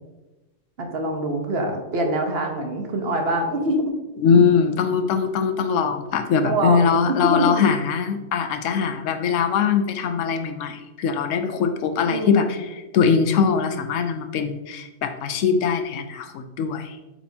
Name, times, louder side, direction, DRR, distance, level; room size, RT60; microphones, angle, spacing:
voice 1, 0.8-3.9 6.4-7.6 12.1-12.5, right 1 dB, 55° right, 3 dB, 1.2 m, -24 dB
voice 2, 4.2-12.6 12.9-16.9, left 6 dB, 85° left, 7 dB, 1.0 m, -21 dB
8.4 x 4.4 x 2.8 m, 1.1 s
omnidirectional pair, 1.3 m